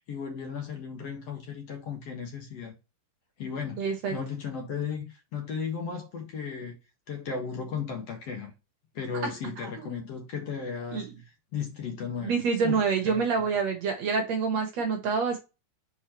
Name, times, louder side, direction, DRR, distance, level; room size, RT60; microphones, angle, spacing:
voice 1, 0.1-2.7 3.4-6.8 7.1-8.5 8.9-11.1 11.5-13.4, left 6 dB, 55° left, 2.3 m, -35 dB
voice 2, 3.8-4.1 9.6-9.9 10.9-11.1 12.2-15.4, right 5 dB, 60° right, 2.1 m, -27 dB
6.0 x 4.6 x 4.4 m
omnidirectional pair, 4.0 m